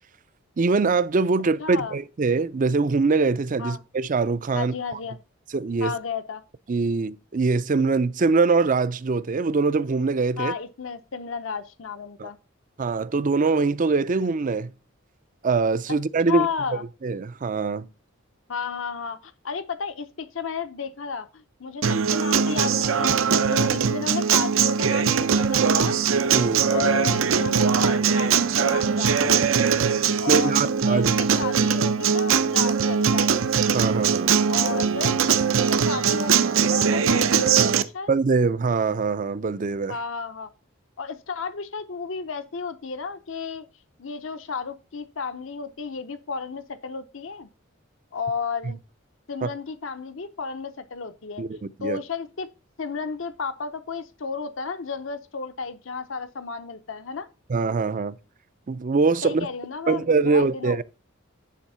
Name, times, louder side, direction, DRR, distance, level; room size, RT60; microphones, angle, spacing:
voice 1, 0.6-4.7 5.5-5.9 6.7-10.5 12.2-12.3 12.8-14.7 15.4-16.5 17.0-17.9 26.3-26.7 30.3-31.3 33.7-34.3 38.1-40.0 49.4-49.5 51.4-52.0 57.5-58.2 58.7-59.5 59.9-60.8, right 4 dB, 40° right, 0.5 m, -23 dB
voice 2, 1.6-2.0 3.6-3.8 4.5-5.2 5.8-6.4 10.4-12.4 16.3-16.8 18.5-23.1 23.5-26.0 26.7-29.4 30.2-30.6 30.9-33.5 34.5-35.2 35.5-38.1 39.9-40.5 41.0-43.7 44.0-47.5 48.1-48.8 49.3-52.5 52.8-57.3 59.2-60.8, left 5 dB, 70° left, 0.7 m, -33 dB
Acoustic guitar, 21.8-37.8, right 6 dB, 80° right, 0.7 m, -21 dB
10.0 x 3.6 x 5.5 m
head